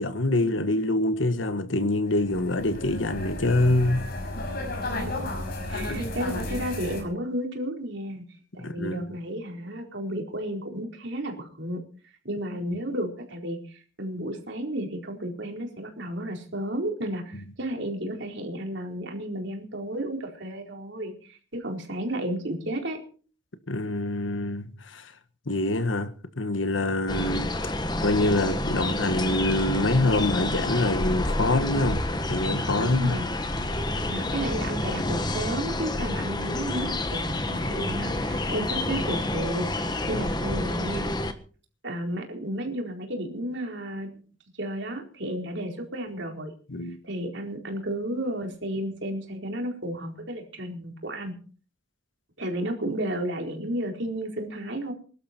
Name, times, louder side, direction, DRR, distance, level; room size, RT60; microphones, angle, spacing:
voice 1, 0.0-4.1 5.7-6.1 8.6-9.1 23.7-25.1 25.5-27.7 28.0-32.0 32.3-33.2 36.4-36.5 40.1-40.2 46.7-47.0, left 2 dB, 70° left, 1.6 m, -25 dB
sound 1, 2.1-7.0, left 1 dB, 50° left, 5.5 m, -33 dB
voice 2, 5.7-8.2 8.5-11.8 12.2-13.6 14.0-23.0 32.8-33.3 34.1-41.1 41.8-44.1 44.6-46.5 47.0-51.3 52.4-54.9, right 1 dB, 60° right, 4.3 m, -32 dB
sound 2, 27.1-41.3, left 1 dB, 20° left, 1.4 m, -29 dB
22.5 x 12.0 x 4.5 m
head